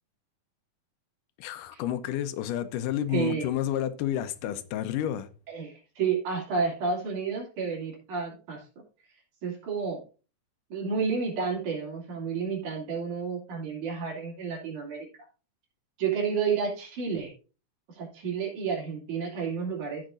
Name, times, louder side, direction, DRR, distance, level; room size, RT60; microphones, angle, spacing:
voice 1, 1.4-5.3, left 11 dB, 85° left, 2.3 m, -30 dB
voice 2, 3.1-3.5 5.5-8.6 9.4-10.0 10.7-15.1 16.0-17.3 18.0-20.0, right 5 dB, 70° right, 4.3 m, -30 dB
15.0 x 6.4 x 2.6 m
omnidirectional pair, 3.7 m